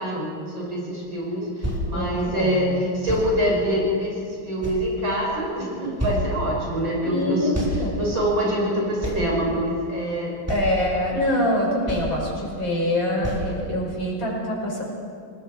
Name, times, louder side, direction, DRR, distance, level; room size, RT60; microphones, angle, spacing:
voice 1, 0.0-7.5 8.0-10.4, equal, 60° right, -3 dB, 7.3 m, -25 dB
sound 1, 1.0-1.1 1.6-1.9 3.1-3.3 4.1-4.2 4.6-5.3 5.6-5.7 6.0-6.3 7.5-7.8 8.1-8.2 9.0-9.3 9.9-10.0 10.5-10.8 11.5-11.6 11.9-12.2 12.6-12.7 13.2-13.5 14.1-14.2, equal, 5° right, 4.0 m, -28 dB
voice 2, 1.9-2.7 7.0-7.9 10.5-14.8, left 1 dB, 60° left, -3 dB, 6.4 m, -25 dB
28.0 x 20.0 x 4.8 m, 2.3 s
omnidirectional pair, 2.4 m